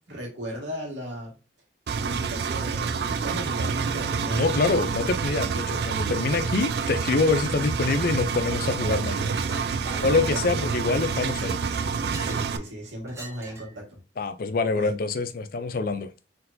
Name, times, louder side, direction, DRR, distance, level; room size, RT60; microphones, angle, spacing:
voice 1, 0.0-1.3 2.0-4.6 9.8-10.6 12.2-14.0 14.7-15.0, equal, 75° right, 1.8 m, -36 dB
Engine, 1.9-12.6, right 5 dB, 60° right, 0.4 m, -28 dB
voice 2, 4.3-9.3 10.0-11.6 14.2-16.1, left 3 dB, 50° left, 0.4 m, -25 dB
Chink clink, 9.4-9.7 10.0-10.5 11.0-12.5 13.1-13.8, right 2 dB, 15° right, 1.0 m, -44 dB
4.4 x 3.9 x 2.6 m
head